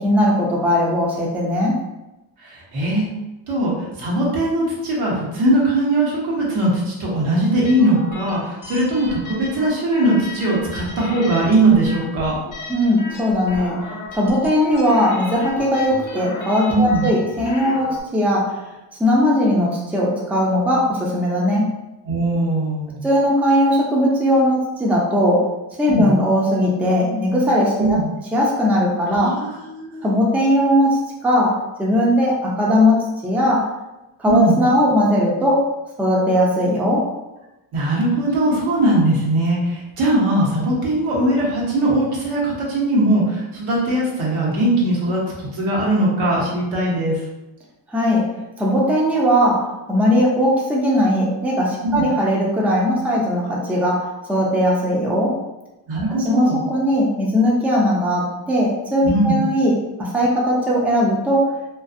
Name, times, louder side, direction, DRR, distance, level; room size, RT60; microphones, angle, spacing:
voice 1, 0.0-1.8 12.7-18.6 19.0-21.8 23.0-25.5 25.8-28.0 28.3-29.4 30.0-33.7 34.2-37.1 47.9-55.4 56.1-61.6, equal, 5° right, -3 dB, 0.4 m, -19 dB
voice 2, 2.4-3.1 3.5-12.4 16.7-17.1 22.0-23.0 25.9-26.1 27.8-28.1 29.1-30.1 34.2-34.6 37.7-47.2 51.8-52.1 55.9-56.6 59.0-59.4, right 1 dB, 80° right, -4 dB, 1.1 m, -20 dB
sound 1, 7.7-18.0, left 3 dB, 40° left, 0.7 m, -35 dB
2.5 x 2.4 x 2.5 m, 0.98 s
cardioid pair, 95°, 48 cm